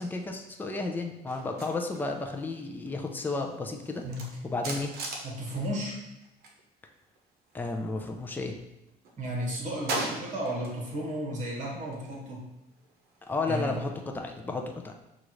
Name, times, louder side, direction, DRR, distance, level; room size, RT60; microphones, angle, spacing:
voice 1, 0.0-4.0 4.4-4.9 7.5-8.6 13.3-14.9, left 3 dB, 10° left, 3 dB, 0.5 m, -32 dB
sound 1, 1.3-6.6 6.9-8.5 8.9-11.0 11.3-14.1, right 2 dB, 65° right, 0.9 m, -41 dB
voice 2, 5.2-6.0 9.2-12.5 13.5-13.8, equal, 45° right, -2 dB, 1.5 m, -34 dB
6.2 x 2.5 x 3.1 m, 0.93 s
cardioid pair, 110°, 17 cm